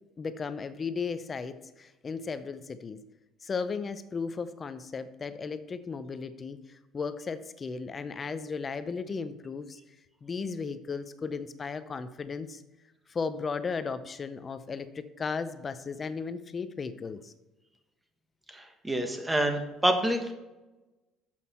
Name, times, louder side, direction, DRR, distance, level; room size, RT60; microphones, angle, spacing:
voice 1, 0.2-3.0 3.4-9.8 10.2-12.6 13.1-17.3, left 5 dB, 30° left, 12 dB, 0.6 m, -35 dB
voice 2, 18.5-20.3, right 1 dB, 10° right, 5 dB, 1.5 m, -27 dB
8.3 x 7.5 x 4.3 m, 1.1 s
cardioid pair, 115°, 0 cm